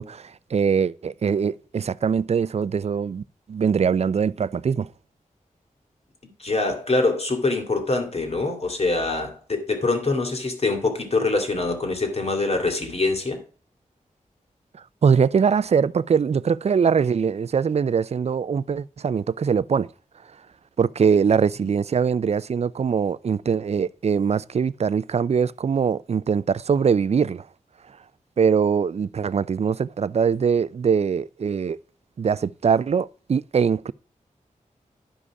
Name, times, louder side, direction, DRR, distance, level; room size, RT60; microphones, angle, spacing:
voice 1, 0.0-3.2 3.5-4.9 15.0-19.9 20.8-27.4 28.4-31.8 32.2-33.9, right 6 dB, 50° right, 0.4 m, -22 dB
voice 2, 6.4-13.4, left 3 dB, 50° left, 2.4 m, -24 dB
11.0 x 5.1 x 4.8 m
wide cardioid pair, 65°, 14 cm